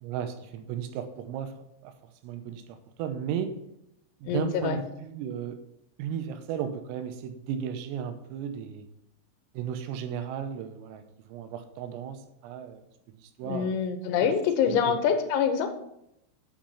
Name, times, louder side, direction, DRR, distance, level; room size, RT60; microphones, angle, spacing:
voice 1, 0.0-1.5 1.8-1.9 2.2-3.6 4.2-5.6 6.0-8.9 9.6-12.8 13.2-13.8 14.2-14.3 14.7-15.0, right 8 dB, 85° right, 8 dB, 3.5 m, -35 dB
voice 2, 4.3-4.8 13.5-15.7, left 7 dB, 85° left, 7 dB, 3.5 m, -25 dB
8.8 x 5.2 x 5.5 m, 0.80 s
omnidirectional pair, 5.9 m